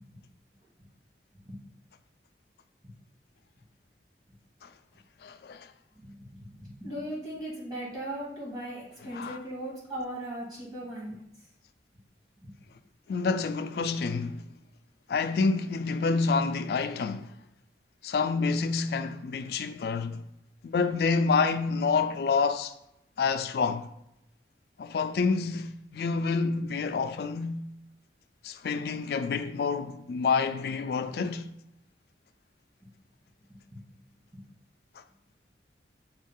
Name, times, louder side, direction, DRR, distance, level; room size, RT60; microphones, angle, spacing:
voice 1, 5.2-5.7 9.1-9.4 13.1-14.5 15.1-17.3 18.0-20.2 20.6-22.7 23.2-23.9 24.8-27.7 28.4-31.5, left 4 dB, 60° left, 0.3 m, -28 dB
voice 2, 6.0-11.2 12.4-12.5, right 1 dB, 25° right, 1.8 m, -38 dB
6.2 x 2.3 x 3.5 m
head